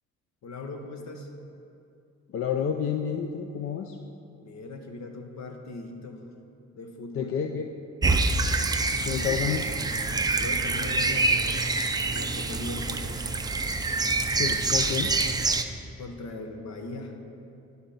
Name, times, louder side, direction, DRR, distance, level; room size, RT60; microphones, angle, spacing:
voice 1, 0.4-1.3 4.4-6.2 6.7-7.3 10.2-11.7 12.1-13.3 16.0-17.2, left 2 dB, 65° left, 4 dB, 1.1 m, -39 dB
voice 2, 2.3-4.0 7.1-7.7 9.0-9.6 14.4-15.1, left 8 dB, 45° left, 5 dB, 0.5 m, -29 dB
sound 1, 8.0-15.6, right 3 dB, 15° right, 0.4 m, -26 dB
11.5 x 4.0 x 5.6 m, 2.7 s
cardioid pair, 90°, 30 cm